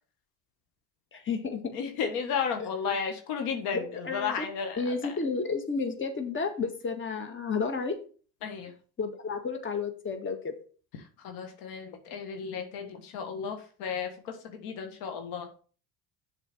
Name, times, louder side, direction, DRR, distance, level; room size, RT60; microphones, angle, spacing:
voice 1, 1.1-1.8 2.9-3.0 3.7-4.5 4.8-8.0 9.0-10.5, left 4 dB, 35° left, 6 dB, 1.7 m, -32 dB
voice 2, 1.7-5.2 8.4-8.7 11.2-15.5, left 6 dB, 80° left, 5 dB, 1.5 m, -34 dB
7.1 x 4.5 x 6.0 m, 0.40 s
supercardioid pair, 80°, 36 cm